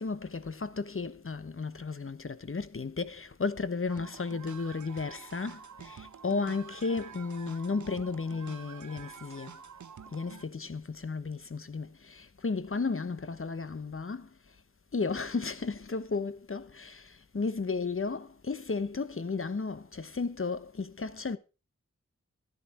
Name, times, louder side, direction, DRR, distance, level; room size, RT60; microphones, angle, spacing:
voice 1, 0.0-9.5 10.1-14.3 14.9-21.4, left 4 dB, 45° left, 1.2 m, -34 dB
sound 1, 3.9-10.4, right 7 dB, 75° right, 0.9 m, -48 dB
13.0 x 11.5 x 4.4 m
cardioid pair, 45°, 30 cm